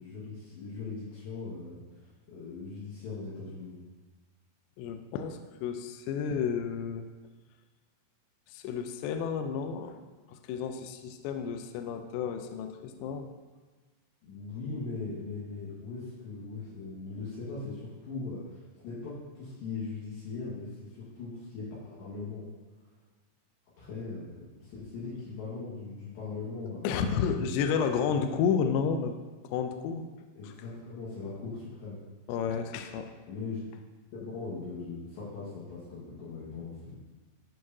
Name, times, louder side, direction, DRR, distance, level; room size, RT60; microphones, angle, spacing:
voice 1, 0.0-3.8 14.2-22.5 23.8-27.4 28.0-28.4 30.3-32.0 33.3-33.7 34.1-37.0, left 4 dB, 70° left, -10 dB, 3.6 m, -40 dB
voice 2, 4.8-7.1 8.5-10.0 10.3-13.3 26.8-29.1 29.4-30.0 32.3-33.1, left 6 dB, 85° left, 7 dB, 2.5 m, -31 dB
13.0 x 4.8 x 2.7 m, 1.3 s
omnidirectional pair, 5.6 m